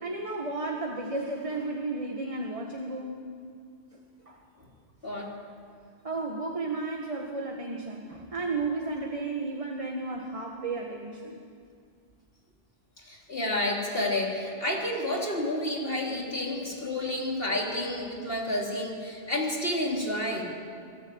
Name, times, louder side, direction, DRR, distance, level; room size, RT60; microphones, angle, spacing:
voice 1, 0.0-3.2 3.9-4.4 5.1-5.4 6.0-11.4, right 3 dB, 30° right, 1 dB, 1.9 m, -33 dB
voice 2, 13.0-20.5, left 1 dB, 60° left, -1 dB, 3.4 m, -30 dB
26.5 x 18.5 x 8.9 m, 2.2 s
omnidirectional pair, 1.1 m